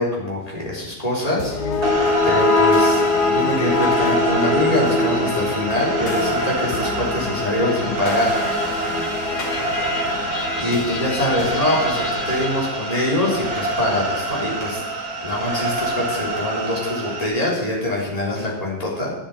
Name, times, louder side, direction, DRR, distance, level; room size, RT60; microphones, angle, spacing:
voice 1, 0.0-1.6 2.2-3.0 3.3-8.4 10.6-14.8 15.2-19.1, left 1 dB, 20° left, -5 dB, 3.9 m, -24 dB
sound 1, 1.4-13.7, left 3 dB, 85° left, 1.7 m, -24 dB
sound 2, 1.8-17.3, right 2 dB, 70° right, 2.1 m, -26 dB
9.9 x 7.7 x 8.5 m, 0.95 s
omnidirectional pair, 1.7 m